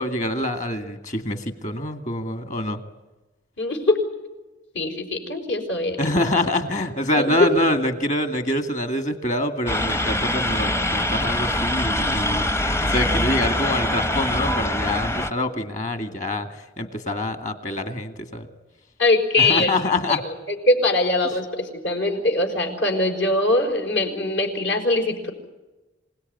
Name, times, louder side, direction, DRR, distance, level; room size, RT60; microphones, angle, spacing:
voice 1, 0.0-2.8 6.0-12.5 12.8-16.5 16.8-18.5 19.4-20.2, left 1 dB, 40° left, 9 dB, 2.2 m, -25 dB
voice 2, 3.6-4.0 4.7-6.0 7.1-7.5 19.0-19.7 20.1-25.3, left 2 dB, 75° left, 4 dB, 5.3 m, -22 dB
sound 1, 9.7-15.3, left 1 dB, 15° left, 0.7 m, -23 dB
27.0 x 17.5 x 9.5 m, 1.1 s
head